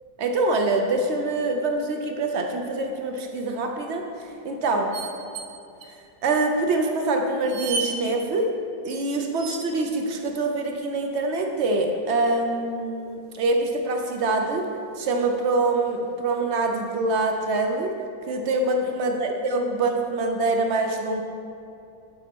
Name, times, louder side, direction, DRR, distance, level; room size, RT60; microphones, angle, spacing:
voice 1, 0.2-5.0 6.2-8.5 8.8-14.7 15.0-18.0 18.3-21.2, right 2 dB, 65° right, 4 dB, 0.7 m, -25 dB
sound 1, 3.2-3.5 4.9-5.5 5.8-5.9 6.7-6.8 7.4-7.9 9.4-9.9 11.9-12.4 13.9-14.0 14.2-14.4 15.1-15.9 16.3-16.4, right 5 dB, 80° right, 1.3 m, -34 dB
8.9 x 4.1 x 4.5 m, 2.6 s
omnidirectional pair, 1.6 m